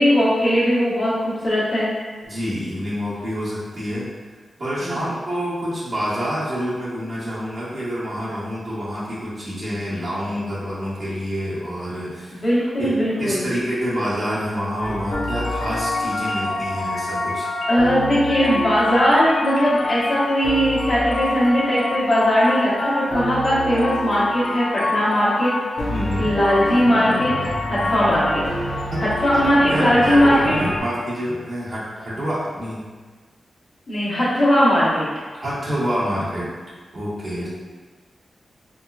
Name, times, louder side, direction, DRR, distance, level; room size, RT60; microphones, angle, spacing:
voice 1, 0.0-1.9 4.8-5.0 12.4-13.4 17.7-25.5 26.2-27.3 27.7-28.4 28.7-30.6 33.9-35.1, equal, 50° left, -9 dB, 1.3 m, -19 dB
voice 2, 2.2-4.1 4.6-12.4 12.8-17.5 25.9-26.3 28.9-29.4 29.7-32.8 35.4-36.5 36.9-37.5, equal, 55° right, -10 dB, 1.5 m, -27 dB
sound 1, 14.8-30.8, left 2 dB, 90° left, 0.7 m, -26 dB
3.7 x 2.9 x 2.4 m, 1.4 s
wide cardioid pair, 105°, 0 cm